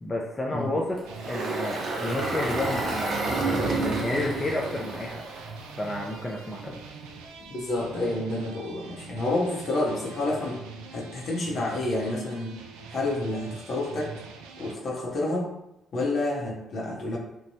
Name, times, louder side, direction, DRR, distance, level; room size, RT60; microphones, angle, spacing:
voice 1, 0.0-5.2 5.8-6.8, left 1 dB, 25° left, -2 dB, 0.5 m, -31 dB
Engine, 1.0-6.3, right 2 dB, 55° right, 0.7 m, -30 dB
sound 1, 1.0-14.7, right 4 dB, 85° right, 0.3 m, -44 dB
voice 2, 7.5-10.6 10.9-12.6 12.9-14.1 14.6-15.5 15.9-17.2, left 2 dB, 60° left, -2 dB, 0.7 m, -29 dB
3.0 x 2.2 x 2.7 m, 0.86 s
supercardioid pair, 55°, 0 cm